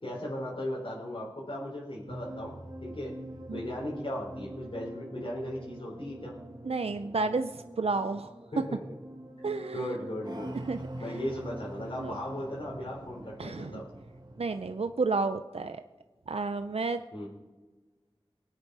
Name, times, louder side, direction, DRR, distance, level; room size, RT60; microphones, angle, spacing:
voice 1, 0.0-2.5 2.8-3.1 3.5-6.4 8.5-8.8 9.7-10.6 11.0-13.8 17.1-17.3, left 1 dB, 65° left, -8 dB, 4.1 m, -37 dB
sound 1, 2.1-14.8, right 1 dB, 45° right, 1.5 m, -44 dB
voice 2, 6.6-8.3 9.4-9.9 10.7-10.8 11.8-12.2 13.4-13.8 14.4-15.8 16.3-17.0, right 3 dB, 80° right, 9 dB, 0.6 m, -31 dB
23.0 x 8.9 x 4.9 m, 1.3 s
wide cardioid pair, 45°, 10 cm